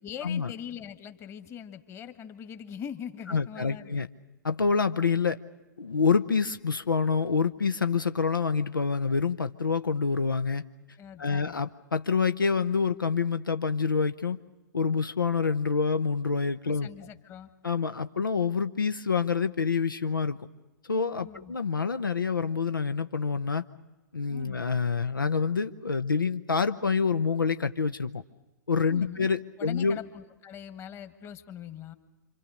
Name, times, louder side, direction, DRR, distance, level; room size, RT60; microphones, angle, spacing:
voice 1, 0.0-4.0 11.0-11.5 16.6-17.5 21.2-21.6 24.3-24.6 28.9-29.3 29.6-31.9, left 8 dB, 25° left, 10 dB, 1.6 m, -42 dB
voice 2, 3.3-4.1 4.4-5.4 5.8-10.6 11.2-14.4 14.7-16.9 17.6-20.4 20.9-23.6 24.1-28.2 28.7-30.0, left 5 dB, 80° left, 10 dB, 0.8 m, -27 dB
28.0 x 25.5 x 6.5 m, 1.1 s
figure-of-eight pair, 110°, 11 cm